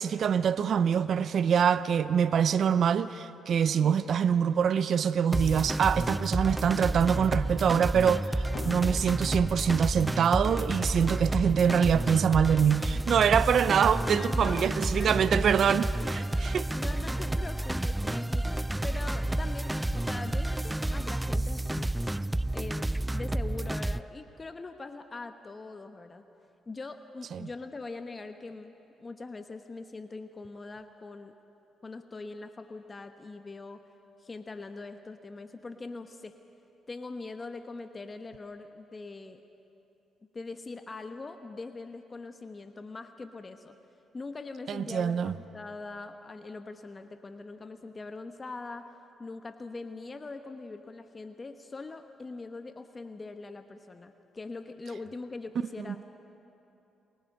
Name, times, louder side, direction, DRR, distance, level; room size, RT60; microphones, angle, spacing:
voice 1, 0.0-16.7 27.3-27.4 44.7-45.3, right 7 dB, 60° right, 0.6 m, -25 dB
sound 1, 5.3-24.0, right 1 dB, 10° right, 0.5 m, -30 dB
sound 2, 7.3-7.4 7.6-7.8 8.1-8.3 8.5-22.5, left 6 dB, 55° left, 1.2 m, -50 dB
voice 2, 14.2-15.5 16.0-16.3 16.7-18.5 18.8-21.9 22.5-26.2 26.7-31.3 31.8-33.8 34.2-36.4 36.9-39.4 40.3-43.8 44.1-48.9 49.2-56.0, left 3 dB, 35° left, 1.0 m, -42 dB
29.0 x 21.0 x 5.4 m
supercardioid pair, 55°, 0 cm